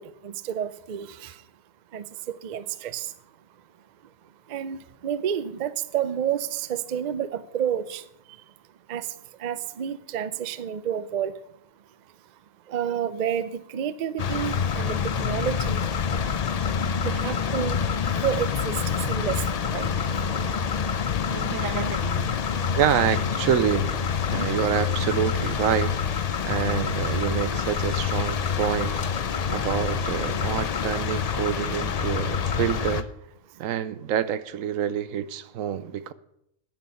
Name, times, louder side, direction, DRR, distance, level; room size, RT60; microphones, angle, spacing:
voice 1, 0.0-1.5 1.9-3.1 4.5-8.4 8.9-11.4 12.7-15.8 17.0-20.3 22.6-22.7 33.5-33.6, right 9 dB, 55° right, 0.5 m, -30 dB
sound 1, 14.2-33.0, left 6 dB, 65° left, 0.4 m, -27 dB
voice 2, 21.3-22.3 22.8-23.9 24.3-26.0 26.5-29.0 29.5-33.1 33.6-36.1, right 9 dB, 80° right, 1.0 m, -27 dB
10.0 x 7.6 x 6.9 m
omnidirectional pair, 1.4 m